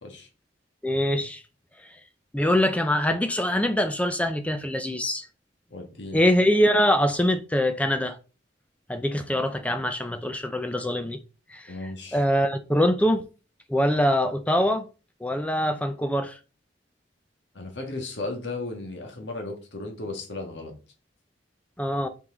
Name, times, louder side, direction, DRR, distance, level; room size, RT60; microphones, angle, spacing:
voice 1, 0.8-1.4 2.3-5.3 6.1-8.2 8.9-11.2 11.5-11.7 12.1-13.3 13.7-14.8 15.2-16.4 21.8-22.1, equal, 10° left, 0.5 m, -23 dB
voice 2, 5.7-6.2 11.7-12.2 17.5-20.7, left 2 dB, 70° left, 1.6 m, -35 dB
5.8 x 4.7 x 3.9 m
head